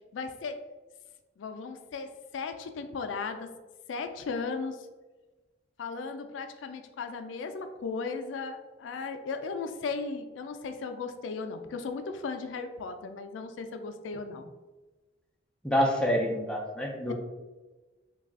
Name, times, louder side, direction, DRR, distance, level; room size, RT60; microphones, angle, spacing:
voice 1, 0.1-0.6 1.4-2.1 2.3-3.5 3.9-4.8 5.8-14.5, left 4 dB, 85° left, 7 dB, 0.3 m, -36 dB
voice 2, 15.6-17.1, equal, 5° left, -1 dB, 0.4 m, -27 dB
3.2 x 2.3 x 3.5 m, 1.2 s
head